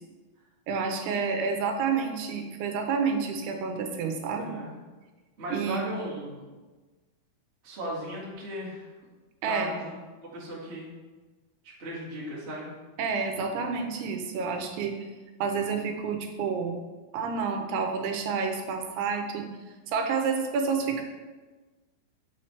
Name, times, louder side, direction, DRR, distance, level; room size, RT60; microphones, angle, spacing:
voice 1, 0.7-4.6 5.5-6.0 9.4-9.7 13.0-15.0 15.4-16.8 17.1-19.5 19.9-21.0, right 5 dB, 85° right, 4 dB, 2.8 m, -29 dB
voice 2, 4.4-4.8 5.4-6.6 7.6-8.9 9.5-9.9 10.2-10.9 11.6-12.7, equal, 60° right, -7 dB, 0.6 m, -37 dB
7.1 x 5.7 x 3.2 m, 1.3 s
omnidirectional pair, 4.5 m